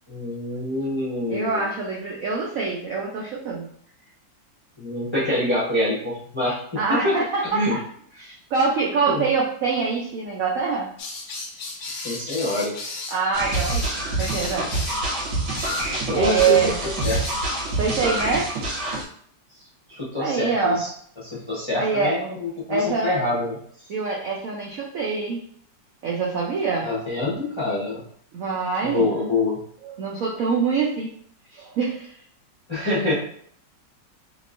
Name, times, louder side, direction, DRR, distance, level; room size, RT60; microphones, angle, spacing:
voice 1, 0.1-1.7 4.8-7.2 7.5-7.8 9.1-9.2 11.9-12.7 16.1-17.2 19.9-20.9 21.2-23.6 26.8-28.0 28.8-29.6 32.7-33.1, left 2 dB, 25° left, -7 dB, 0.6 m, -26 dB
voice 2, 1.3-3.7 6.8-7.8 8.2-10.9 13.1-14.7 16.1-16.8 17.8-18.5 20.2-20.8 21.8-22.2 22.7-23.1 23.9-25.4 26.0-26.9 28.3-29.2 29.8-31.1 31.5-32.2, right 5 dB, 70° right, -3 dB, 0.8 m, -24 dB
sound 1, 11.0-15.0 15.5-15.9 16.4-16.6 16.9-17.3, left 3 dB, 65° left, 0.7 m, -34 dB
sound 2, 13.3-19.0, right 2 dB, 90° right, 1.7 m, -26 dB
3.6 x 3.0 x 2.5 m, 0.63 s
omnidirectional pair, 2.0 m